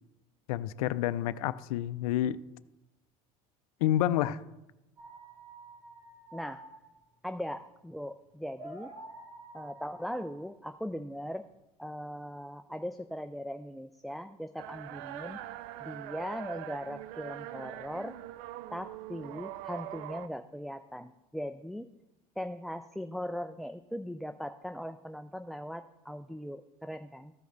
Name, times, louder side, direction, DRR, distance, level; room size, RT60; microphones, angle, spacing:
voice 1, 0.5-2.4 3.8-4.4, left 12 dB, 85° left, 0.4 m, -29 dB
sound 1, 5.0-11.6, right 2 dB, 85° right, 2.8 m, -50 dB
voice 2, 6.3-6.6 7.2-8.9 9.5-11.5 11.8-15.4 15.8-18.1 18.7-21.9 22.4-27.3, equal, ahead, 0.3 m, -39 dB
sound 2, 14.6-20.3, right 14 dB, 70° right, 0.5 m, -43 dB
14.0 x 5.2 x 3.9 m
hypercardioid pair, 80°, 18 cm